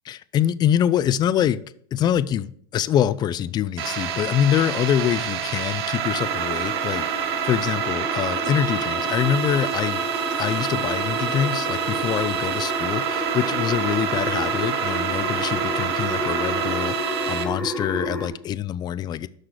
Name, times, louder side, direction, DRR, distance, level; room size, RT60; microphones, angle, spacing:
voice 1, 0.1-1.6 1.9-7.0 7.4-10.0 10.4-17.0 17.3-19.3, left 10 dB, 30° left, 0.4 m, -24 dB
sound 1, 3.8-17.5, right 8 dB, 75° right, 0.8 m, -27 dB
sound 2, 6.2-18.3, left 1 dB, 10° left, 1.6 m, -31 dB
6.4 x 5.8 x 4.9 m
supercardioid pair, 110°, 13 cm